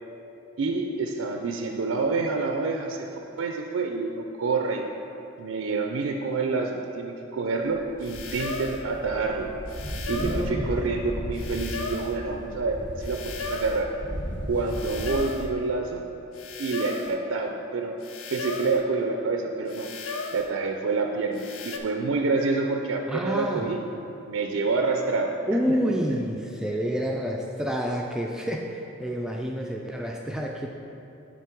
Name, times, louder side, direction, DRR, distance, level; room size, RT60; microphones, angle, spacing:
voice 1, 0.6-3.1 3.4-4.9 5.4-9.5 10.1-13.9 14.5-16.0 16.6-18.0 18.3-19.9 20.3-23.8 24.3-25.4, right 3 dB, 85° right, 3 dB, 0.4 m, -27 dB
sound 1, 7.7-15.2, equal, 40° left, 1.4 m, -35 dB
sound 2, 8.0-8.8 9.7-10.5 11.4-12.2 13.0-13.8 14.7-15.5 16.4-17.2 18.0-18.8 19.7-20.5 21.3-21.8, left 4 dB, 85° left, 0.6 m, -36 dB
voice 2, 10.1-10.7 23.1-23.7 25.5-30.7, equal, 5° right, 0 dB, 0.3 m, -28 dB
8.2 x 4.0 x 4.5 m, 2.8 s
head